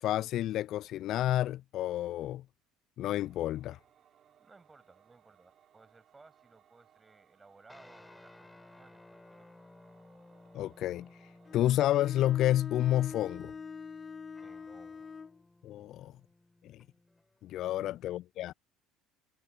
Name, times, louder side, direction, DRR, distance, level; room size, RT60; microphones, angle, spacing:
voice 1, 0.0-2.4 3.0-3.8 10.5-11.1 11.5-13.5 15.6-16.1 16.6-16.8 17.4-18.5, left 13 dB, 55° left, 0.4 m, -30 dB
Singing / Musical instrument, 3.0-13.0, right 9 dB, 45° right, 7.0 m, -67 dB
voice 2, 4.4-9.5 14.4-15.1 15.8-16.1 17.7-17.9, right 3 dB, 20° right, 7.2 m, -60 dB
sound 1, 7.7-17.4, left 2 dB, 15° left, 7.5 m, -58 dB
Bowed string instrument, 11.5-15.4, left 5 dB, 30° left, 1.4 m, -45 dB
hypercardioid pair, 65°, 0 cm